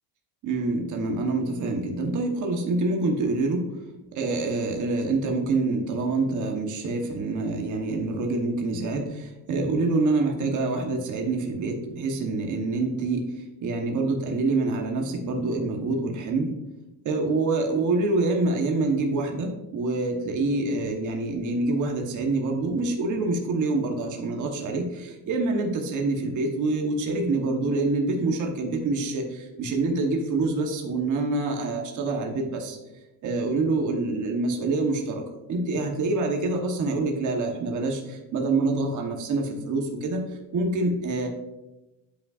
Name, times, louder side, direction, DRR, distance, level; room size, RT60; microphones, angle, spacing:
voice 1, 0.4-3.7 4.1-16.5 17.0-32.8 33.2-35.2 35.5-41.3, right 3 dB, 40° right, 2 dB, 1.0 m, -26 dB
10.5 x 5.5 x 2.4 m, 1.0 s
cardioid pair, 175°, 45 cm